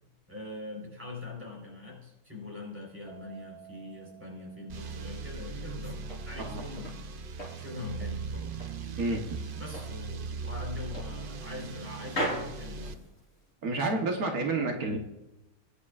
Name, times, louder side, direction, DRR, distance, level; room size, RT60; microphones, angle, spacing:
voice 1, 0.3-7.0 7.5-8.7 9.5-13.0, left 3 dB, 10° right, -1 dB, 4.1 m, -42 dB
Keyboard (musical), 3.1-5.5, right 9 dB, 85° left, 1.9 m, -54 dB
sound 1, 4.7-12.9, right 4 dB, 50° right, 0.7 m, -39 dB
sound 2, 5.6-7.0 7.4-8.8 9.2-10.0 10.3-10.5 10.9-11.8 12.1-13.5, equal, 55° left, 4.7 m, -38 dB
voice 2, 13.6-15.0, right 2 dB, 80° right, 2 dB, 1.6 m, -29 dB
20.5 x 10.0 x 2.4 m, 0.96 s
omnidirectional pair, 1.5 m